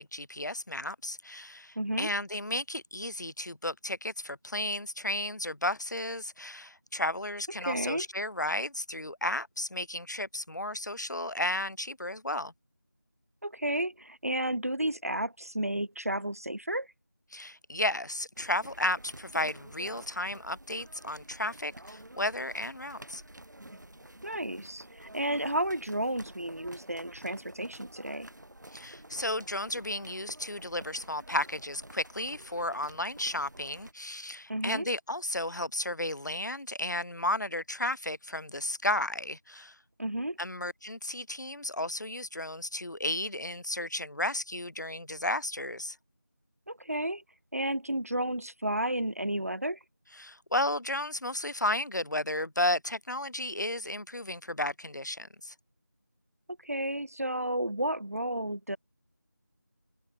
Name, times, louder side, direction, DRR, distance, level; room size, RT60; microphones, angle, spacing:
voice 1, 0.0-12.5 17.3-23.2 28.7-39.7 40.4-46.0 50.2-55.5, left 1 dB, 65° left, 0.7 m, -33 dB
voice 2, 1.8-2.1 7.6-8.1 13.4-16.9 24.2-28.3 34.5-34.9 40.0-40.4 46.7-47.2 47.5-49.8 56.6-58.8, right 1 dB, 50° right, 0.8 m, -32 dB
sound 1, 18.4-33.9, right 1 dB, 65° right, 1.2 m, -50 dB
figure-of-eight pair, 175°, 10 cm